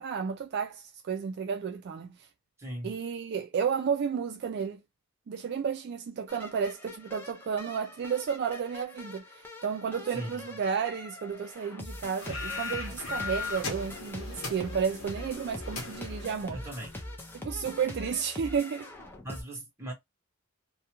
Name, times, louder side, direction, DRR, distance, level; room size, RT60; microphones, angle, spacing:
voice 1, 0.0-2.3 2.8-4.8 5.3-16.6 17.3-18.9, right 6 dB, 50° right, 0.3 m, -32 dB
voice 2, 2.6-2.9 10.1-10.5 16.5-16.9 19.2-19.9, right 1 dB, 10° right, 0.9 m, -39 dB
sound 1, 6.3-19.4, left 1 dB, 10° left, 0.5 m, -43 dB
sound 2, 12.2-17.1, left 4 dB, 65° left, 0.9 m, -38 dB
2.3 x 2.2 x 2.8 m
head